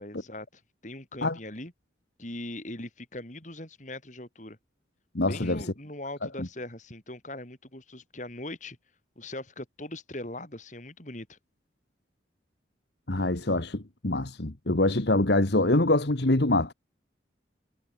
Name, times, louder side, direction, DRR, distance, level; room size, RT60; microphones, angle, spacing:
voice 1, 0.0-1.7 2.2-4.6 5.2-8.8 9.2-11.4, left 1 dB, 40° left, 4.1 m, -40 dB
voice 2, 5.2-5.6 6.4-6.5 13.1-16.7, left 2 dB, 65° left, 1.7 m, -25 dB
head